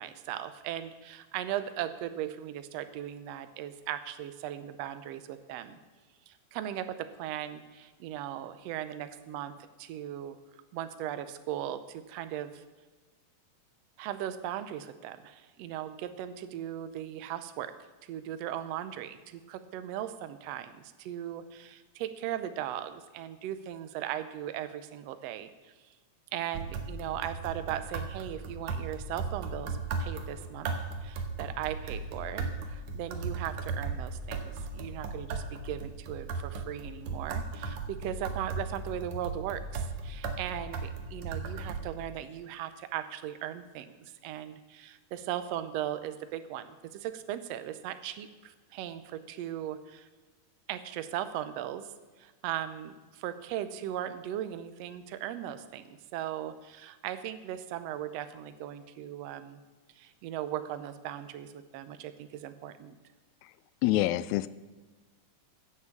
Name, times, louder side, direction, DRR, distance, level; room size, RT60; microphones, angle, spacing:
voice 1, 0.0-5.8 6.3-9.5 9.8-10.4 10.7-12.6 14.0-17.7 18.1-25.7 26.3-30.7 31.0-50.1 50.7-51.9 52.2-59.6 60.0-63.0, right 11 dB, 80° right, 10 dB, 1.5 m, -38 dB
sound 1, 26.5-41.8, right 4 dB, 65° right, 2.1 m, -37 dB
voice 2, 63.8-64.5, left 16 dB, 90° left, 16 dB, 1.6 m, -26 dB
15.0 x 7.2 x 7.2 m, 1.3 s
omnidirectional pair, 3.8 m